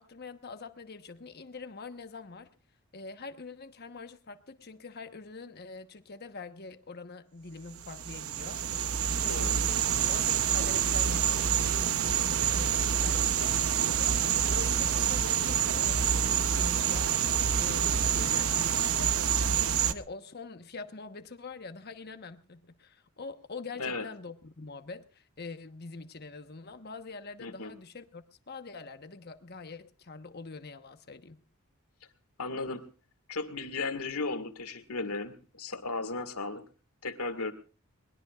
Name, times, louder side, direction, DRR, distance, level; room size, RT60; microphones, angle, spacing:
voice 1, 0.0-2.5 2.9-8.6 9.1-31.4, left 3 dB, 45° left, 1.1 m, -45 dB
sound 1, 7.8-19.9, right 8 dB, 70° right, 0.8 m, -27 dB
voice 2, 9.2-9.6 23.8-24.0 27.4-27.7 32.4-32.8 33.3-36.6 37.0-37.5, left 3 dB, 85° left, 1.9 m, -35 dB
22.0 x 20.5 x 2.4 m
head